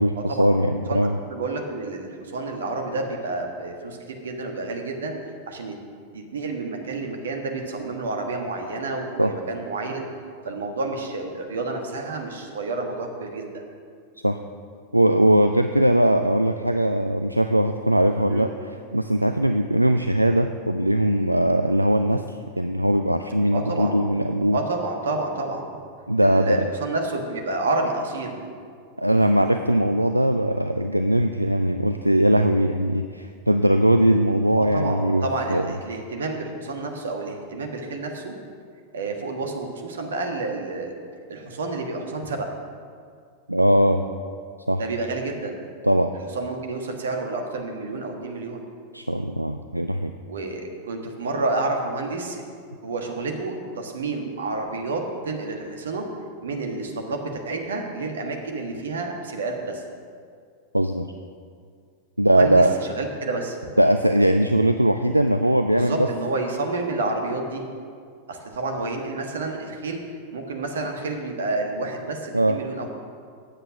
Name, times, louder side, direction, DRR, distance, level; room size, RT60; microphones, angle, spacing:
voice 1, 0.0-1.2 9.2-9.3 14.2-14.4 14.9-24.6 26.1-26.7 29.0-35.7 43.5-44.0 44.7-44.8 45.8-46.1 48.9-50.1 60.7-61.1 62.2-62.7 63.8-66.1 72.3-72.6, right 1 dB, 85° right, 7 dB, 0.3 m, -20 dB
voice 2, 0.9-5.2 5.5-5.7 6.1-10.1 10.4-13.5 18.3-18.5 23.5-24.0 24.5-25.6 26.2-28.4 34.6-38.3 38.9-40.9 41.3-42.5 44.7-45.6 46.3-48.6 50.3-52.4 52.8-56.1 56.4-59.8 62.2-63.6 65.7-67.6 68.3-70.0 70.3-72.9, right 3 dB, 65° right, 3 dB, 1.4 m, -29 dB
8.8 x 8.0 x 6.1 m, 2.2 s
figure-of-eight pair, 90°, 0 cm